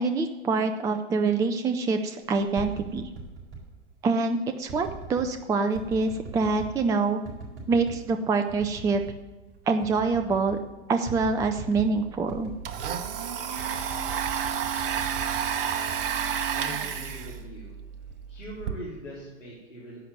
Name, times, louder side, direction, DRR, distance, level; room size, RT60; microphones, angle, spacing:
voice 1, 0.0-3.0 4.0-7.2 7.7-9.0 9.7-10.6 10.9-12.5, right 4 dB, 10° right, 7 dB, 0.5 m, -25 dB
sound 1, 2.3-3.7 4.7-5.3 5.7-6.8 7.2-8.0 8.5-9.2 9.5-9.6 9.8-10.6 11.1-12.0 12.3-13.0 13.6-16.7 17.1-17.5, right 3 dB, 30° right, 4.3 m, -41 dB
Domestic sounds home sounds, 11.7-11.8 12.1-18.7, right 8 dB, 50° right, 1.2 m, -31 dB
voice 2, 16.5-17.8 18.3-20.0, equal, 80° left, -7 dB, 3.9 m, -41 dB
10.5 x 7.7 x 9.2 m, 1.2 s
figure-of-eight pair, 95°, 36 cm